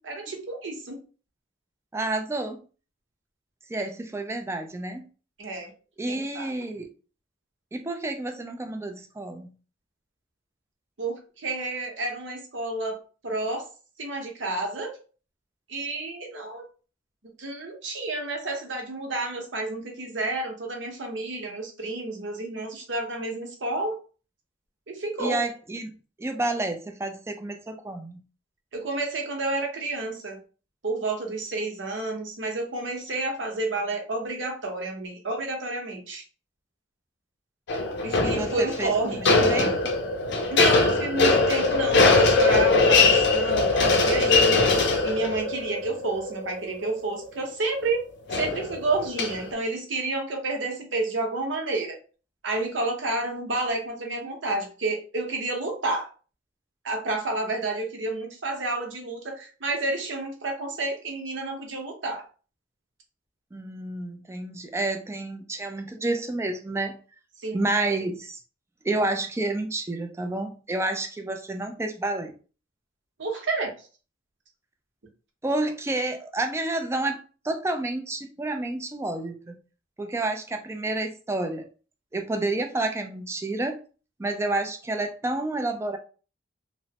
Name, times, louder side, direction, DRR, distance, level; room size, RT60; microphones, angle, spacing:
voice 1, 0.1-1.0 5.4-5.7 6.1-6.5 11.0-13.0 13.2-13.7 14.0-15.0 15.7-16.6 17.4-24.0 24.9-25.4 28.7-30.4 30.8-36.2 38.0-39.7 40.5-44.6 45.0-52.0 52.4-56.1 56.8-62.2 67.4-67.6 73.2-73.7, right 2 dB, 65° right, 0.8 m, -30 dB
voice 2, 1.9-2.6 3.7-5.0 6.0-6.9 7.7-9.5 25.2-25.9 26.2-28.2 38.2-39.1 39.5-39.9 63.5-67.0 67.5-68.4 68.8-72.3 75.4-79.6 80.0-81.7 82.1-83.8 84.2-86.0, right 2 dB, 15° right, 0.3 m, -29 dB
sound 1, 37.7-47.4 48.3-49.5, left 3 dB, 60° left, 0.5 m, -22 dB
3.0 x 2.0 x 2.8 m
head